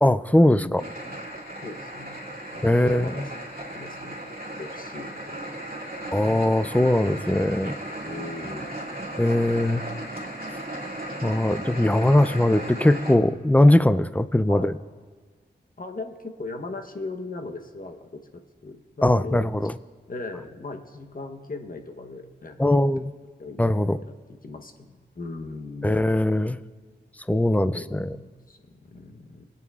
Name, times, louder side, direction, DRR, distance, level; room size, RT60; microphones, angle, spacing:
voice 1, 0.0-0.8 2.6-3.1 6.1-7.8 9.2-9.8 11.2-14.7 19.0-19.7 22.6-23.1 23.6-24.0 25.8-26.6 27.3-28.1, left 1 dB, 10° left, 14 dB, 0.4 m, -20 dB
voice 2, 0.5-1.3 1.6-2.2 2.5-3.4 3.7-4.2 4.6-5.6 6.0-6.2 8.0-8.9 14.5-14.7 15.8-18.2 18.6-19.7 20.1-22.6 23.4-23.6 23.9-26.0 27.7-29.5, left 3 dB, 50° left, 5 dB, 1.0 m, -39 dB
sound 1, 0.8-13.1, right 1 dB, 50° right, 2.4 m, -36 dB
24.5 x 9.1 x 2.4 m, 1.5 s
cardioid pair, 55°, 19 cm